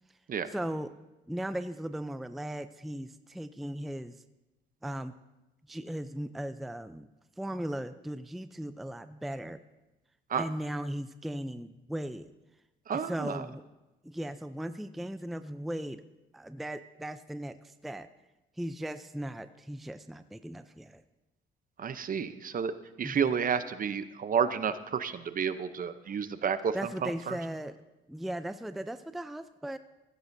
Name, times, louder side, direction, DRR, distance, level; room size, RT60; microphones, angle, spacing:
voice 1, 0.5-0.9 1.3-4.2 4.8-5.2 5.7-7.1 7.4-9.6 10.4-12.3 12.9-13.6 14.0-16.0 16.3-18.1 18.6-21.0 23.0-23.3 26.7-27.8 28.1-29.8, right 1 dB, ahead, 11 dB, 0.4 m, -37 dB
voice 2, 12.9-13.4 21.8-26.8 27.0-27.4, right 7 dB, 45° right, 12 dB, 0.7 m, -31 dB
15.0 x 12.5 x 2.6 m, 1.0 s
cardioid pair, 90°, 20 cm